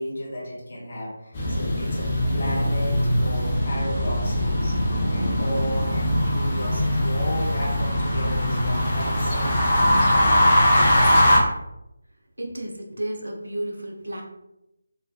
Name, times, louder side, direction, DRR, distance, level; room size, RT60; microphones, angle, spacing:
voice 1, 0.0-4.8 5.1-10.4, equal, 50° left, -3 dB, 1.0 m, -34 dB
sound 1, 1.3-11.4, equal, 25° left, 0.7 m, -21 dB
voice 2, 12.4-14.2, right 1 dB, 70° right, 1 dB, 0.7 m, -32 dB
3.3 x 2.4 x 2.4 m, 0.89 s
figure-of-eight pair, 155°, 0 cm